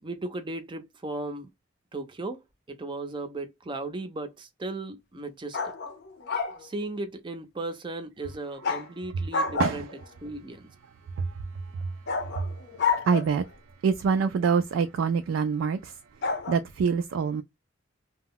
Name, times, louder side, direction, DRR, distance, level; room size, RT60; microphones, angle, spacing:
voice 1, 0.0-1.5 1.9-5.7 6.6-9.9 10.2-10.7, right 2 dB, 25° right, 0.5 m, -36 dB
sound 1, 5.5-6.6 8.6-8.9 9.3-10.0 12.1-13.5 16.2-16.6, left 4 dB, 60° left, 0.6 m, -29 dB
voice 2, 11.2-12.5 13.0-13.5 13.8-17.4, right 5 dB, 80° right, 0.3 m, -26 dB
2.1 x 2.0 x 3.6 m
head